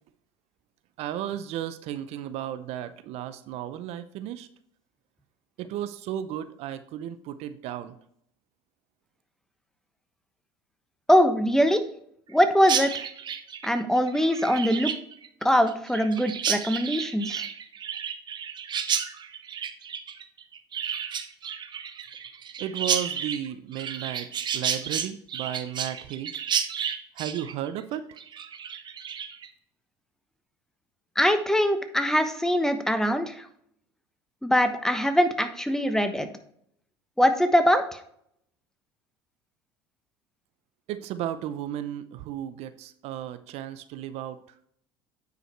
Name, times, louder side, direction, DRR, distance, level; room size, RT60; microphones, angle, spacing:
voice 1, 1.0-4.5 5.6-7.9 22.6-26.3 27.1-28.1 40.9-44.4, right 11 dB, 60° right, 12 dB, 0.6 m, -34 dB
voice 2, 11.1-11.8 12.3-13.1 13.6-14.9 15.4-17.4 31.2-33.4 34.4-36.3 37.2-38.0, equal, 5° left, 8 dB, 1.1 m, -22 dB
Chirp tweet, 12.6-29.5, right 8 dB, 40° right, 1.0 m, -32 dB
9.3 x 5.0 x 4.5 m, 0.68 s
hypercardioid pair, 80°, 12 cm